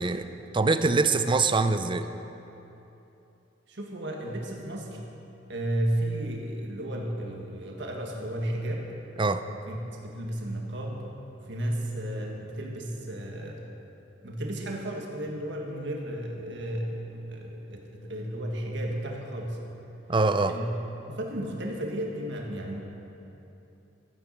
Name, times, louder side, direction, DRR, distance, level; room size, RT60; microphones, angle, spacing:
voice 1, 0.0-2.1 9.2-9.4 20.1-20.6, right 3 dB, 25° right, 10 dB, 0.6 m, -24 dB
voice 2, 3.7-5.0 5.5-8.9 9.7-11.1 11.5-13.6 14.2-19.6 20.5-20.7 21.1-22.8, right 1 dB, 70° right, 0 dB, 1.8 m, -33 dB
14.0 x 10.5 x 7.4 m, 3.0 s
head